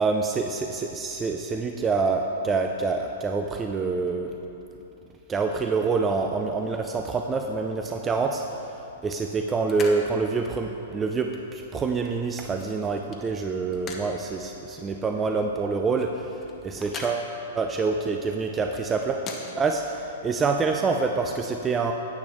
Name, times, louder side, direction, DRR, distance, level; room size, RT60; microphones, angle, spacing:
voice 1, 0.0-4.3 5.3-8.4 9.0-19.2 19.6-21.9, right 4 dB, 20° right, 3 dB, 0.4 m, -26 dB
sound 1, 8.0-19.5, left 4 dB, 25° left, 0.9 m, -45 dB
9.5 x 8.5 x 3.0 m, 3.0 s
hypercardioid pair, 115°, 0 cm